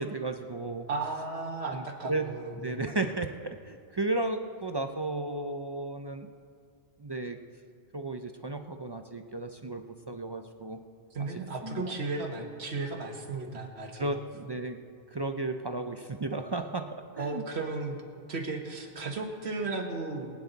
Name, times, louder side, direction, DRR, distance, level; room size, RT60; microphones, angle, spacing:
voice 1, 0.0-0.9 1.7-6.3 7.0-7.4 7.9-10.8 11.2-11.3 11.6-11.8 13.5-13.6 13.9-14.8 15.1-17.4, right 2 dB, 35° right, 6 dB, 0.4 m, -34 dB
voice 2, 0.9-2.9 11.1-14.1 17.2-18.0 18.3-20.3, right 3 dB, 80° right, 2 dB, 1.7 m, -35 dB
23.0 x 9.3 x 4.0 m, 2.3 s
omnidirectional pair, 1.1 m